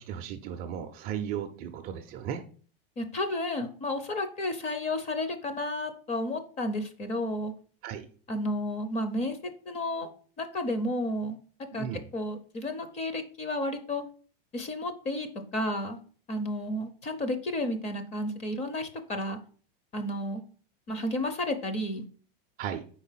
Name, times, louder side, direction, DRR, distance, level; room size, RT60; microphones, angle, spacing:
voice 1, 0.0-2.4 7.8-8.1 11.7-12.0 22.6-22.8, right 9 dB, 30° right, 7 dB, 0.5 m, -35 dB
voice 2, 3.0-7.5 8.3-10.1 10.4-11.4 11.7-11.9 12.1-14.0 14.5-15.3 15.5-16.0 16.3-19.4 19.9-20.4 20.9-22.0, left 1 dB, 20° left, 8 dB, 0.7 m, -32 dB
4.6 x 4.2 x 5.7 m, 0.42 s
supercardioid pair, 155°, 29 cm